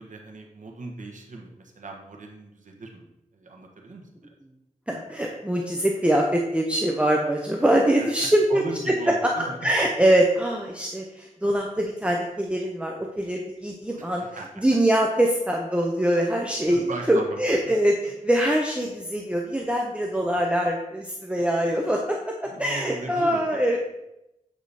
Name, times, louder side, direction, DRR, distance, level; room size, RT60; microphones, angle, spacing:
voice 1, 0.0-4.0 8.0-9.6 14.0-14.6 16.7-17.8 22.4-23.6, right 3 dB, 80° right, 1 dB, 1.4 m, -38 dB
voice 2, 4.9-8.9 9.2-9.3 9.6-14.2 14.6-16.8 17.1-22.3 22.6-23.8, right 1 dB, 10° right, 0 dB, 1.0 m, -23 dB
8.7 x 5.0 x 4.2 m, 0.86 s
wide cardioid pair, 70°, 13 cm